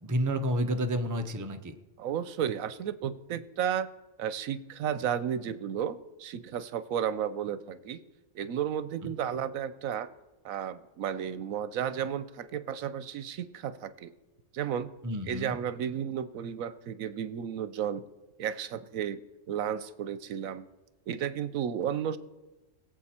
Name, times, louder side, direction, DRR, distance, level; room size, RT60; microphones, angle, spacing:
voice 1, 0.0-1.7 15.0-15.6, equal, 15° right, 7 dB, 0.7 m, -30 dB
voice 2, 2.0-3.9 4.2-8.0 8.3-10.1 10.4-14.1 14.5-14.9 15.3-18.0 18.4-19.2 19.5-20.7 21.1-22.2, right 9 dB, 80° right, 14 dB, 1.1 m, -33 dB
21.5 x 7.7 x 4.3 m, 1.1 s
omnidirectional pair, 1.4 m